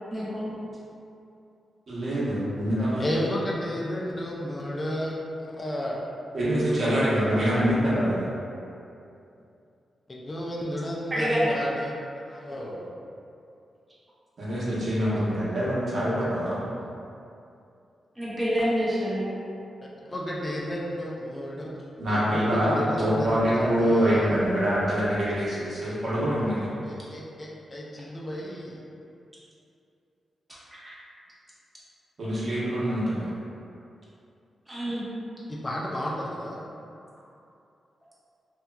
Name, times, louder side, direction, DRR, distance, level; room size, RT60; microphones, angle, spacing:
voice 1, 0.1-0.4 11.1-11.4 18.2-19.3 30.8-31.0 34.7-35.0, equal, 15° right, -9 dB, 0.8 m, -27 dB
voice 2, 1.9-3.3 6.3-8.3 14.4-16.6 22.0-26.7 32.2-33.3, equal, 55° right, -9 dB, 0.9 m, -25 dB
voice 3, 3.0-5.1 5.4-6.0 10.1-11.9 12.3-12.9 20.1-21.7 22.1-24.5 26.5-28.8 35.5-36.6, equal, 30° left, -4 dB, 0.4 m, -32 dB
2.8 x 2.3 x 2.2 m, 2.6 s
cardioid pair, 85°, 0 cm